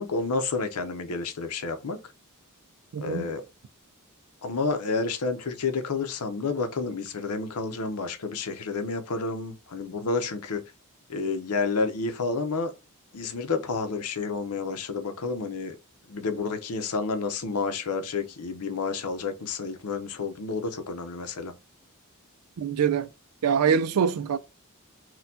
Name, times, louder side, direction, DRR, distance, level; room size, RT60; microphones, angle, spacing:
voice 1, 0.0-2.0 3.0-3.4 4.4-10.6 11.1-12.7 13.1-15.8 16.1-21.5, left 4 dB, 85° left, 0.6 m, -30 dB
voice 2, 2.9-3.3 22.6-23.1 23.4-24.4, right 7 dB, 80° right, 0.4 m, -24 dB
4.2 x 2.2 x 2.7 m
head